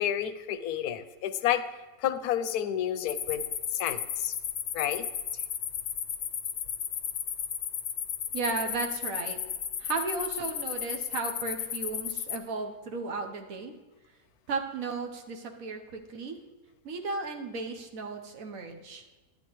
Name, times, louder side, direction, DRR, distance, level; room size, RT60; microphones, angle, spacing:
voice 1, 0.0-1.6 2.0-3.4 3.7-4.3 4.7-5.1, left 10 dB, 90° left, 11 dB, 1.1 m, -30 dB
sound 1, 3.1-12.4, left 8 dB, 65° left, 0.8 m, -34 dB
voice 2, 8.3-9.4 9.8-13.7 14.5-16.4 16.8-19.0, right 3 dB, 65° right, 3 dB, 1.3 m, -35 dB
11.5 x 8.6 x 3.1 m, 1.2 s
omnidirectional pair, 1.6 m